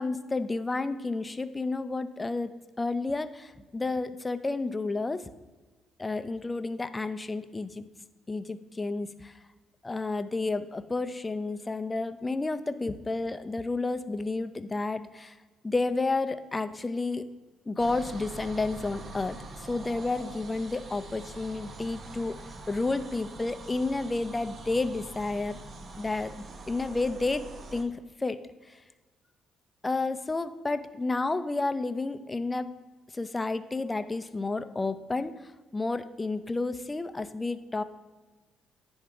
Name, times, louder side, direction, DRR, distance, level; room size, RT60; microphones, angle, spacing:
voice 1, 0.0-5.2 6.0-7.9 8.3-9.3 9.8-15.4 15.6-17.3 17.7-22.4 22.7-25.6 26.0-27.5 27.7-28.4 28.7-28.8 29.8-32.7 33.1-35.3 35.7-37.8, left 3 dB, 20° left, 12 dB, 0.5 m, -31 dB
sound 1, 17.8-27.8, right 3 dB, 45° right, 0.7 m, -44 dB
9.9 x 3.5 x 4.8 m, 1.3 s
supercardioid pair, 70°, 0 cm